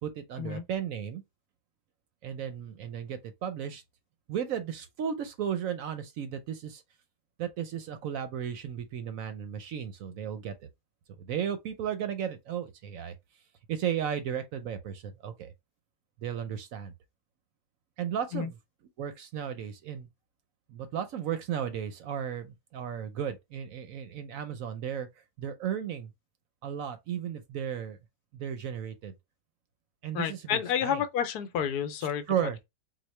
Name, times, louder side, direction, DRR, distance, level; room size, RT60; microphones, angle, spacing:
voice 1, 0.0-1.2 2.2-3.8 4.3-6.8 7.4-10.7 11.2-13.1 13.7-15.5 16.2-16.9 18.0-18.6 19.0-20.1 20.7-25.1 25.4-26.1 26.6-28.0 28.3-29.1 30.0-31.0 32.3-32.6, right 8 dB, 65° right, 0.9 m, -34 dB
voice 2, 30.1-32.3, left 8 dB, 75° left, 1.1 m, -30 dB
4.1 x 2.2 x 3.1 m
omnidirectional pair, 1.7 m